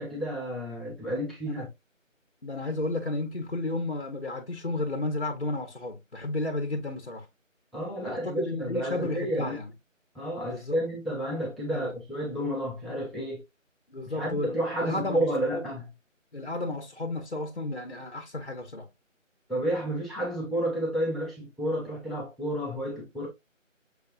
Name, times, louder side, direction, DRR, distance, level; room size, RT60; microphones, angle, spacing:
voice 1, 0.0-1.7 7.7-9.6 10.1-13.4 14.0-15.9 19.5-23.3, right 1 dB, ahead, 0.7 m, -31 dB
voice 2, 2.4-7.3 8.0-9.7 10.5-10.8 11.7-11.9 13.9-14.5 14.8-15.6 16.3-18.9, left 2 dB, 45° left, 0.7 m, -32 dB
6.3 x 2.6 x 2.5 m
figure-of-eight pair, 175°, 39 cm